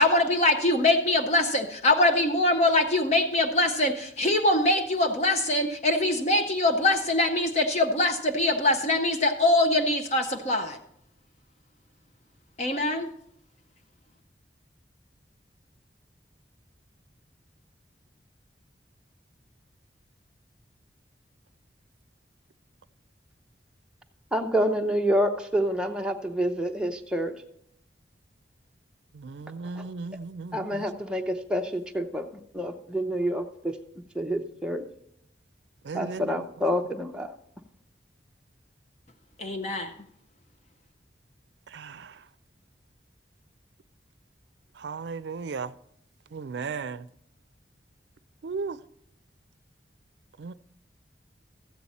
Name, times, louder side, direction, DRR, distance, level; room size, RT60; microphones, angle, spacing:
voice 1, 0.0-10.8 12.6-13.1 39.4-39.9, left 2 dB, 40° left, 0.6 m, -23 dB
voice 2, 24.3-27.4 29.7-29.9 30.5-33.8 34.1-34.8 35.9-37.3, equal, 5° right, 0.6 m, -28 dB
voice 3, 29.2-30.8 35.9-36.4 41.7-42.1 44.8-45.7 46.3-47.0 48.4-48.8 50.4-50.5, right 4 dB, 80° right, 0.4 m, -35 dB
14.0 x 8.4 x 4.1 m
head